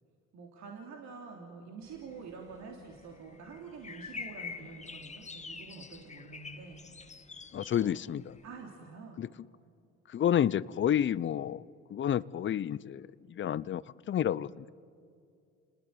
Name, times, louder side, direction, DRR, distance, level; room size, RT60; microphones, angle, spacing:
voice 1, 0.3-7.2 7.7-8.0 8.4-9.2, right 4 dB, 65° right, 1 dB, 3.4 m, -47 dB
sound 1, 1.8-8.5, left 5 dB, 25° left, 1.6 m, -47 dB
voice 2, 7.5-8.4 9.2-9.3 10.1-11.6 11.9-14.7, left 10 dB, 40° left, 19 dB, 0.7 m, -30 dB
29.0 x 20.0 x 9.7 m, 2.4 s
supercardioid pair, 65°, 30 cm